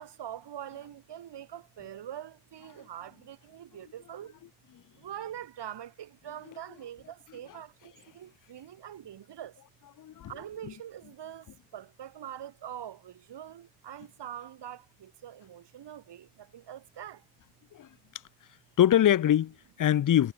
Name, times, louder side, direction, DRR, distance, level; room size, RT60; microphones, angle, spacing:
voice 1, 0.0-4.4 4.9-9.6 10.3-17.2, right 10 dB, 60° right, 4.8 m, -44 dB
voice 2, 10.0-10.3 10.6-10.7 17.7-17.9 18.8-20.3, left 11 dB, 45° left, 0.9 m, -23 dB
hypercardioid pair, 40°, 46 cm